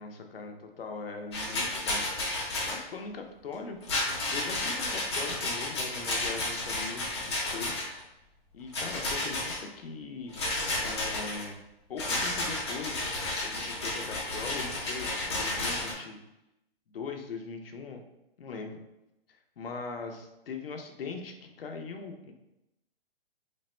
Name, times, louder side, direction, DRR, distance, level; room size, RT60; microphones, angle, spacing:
voice 1, 0.0-2.0 2.7-3.8 4.3-7.9 8.5-10.3 10.8-11.6 11.9-13.1 13.4-16.2 16.9-18.0 18.4-18.8 19.3-22.3, left 4 dB, 65° left, 4 dB, 0.7 m, -40 dB
Rattle, 1.3-2.8 3.8-8.0 8.7-9.6 10.3-11.5 12.0-15.9, left 2 dB, 25° left, 0.7 m, -32 dB
3.4 x 2.1 x 4.2 m, 0.90 s
hypercardioid pair, 180°, 31 cm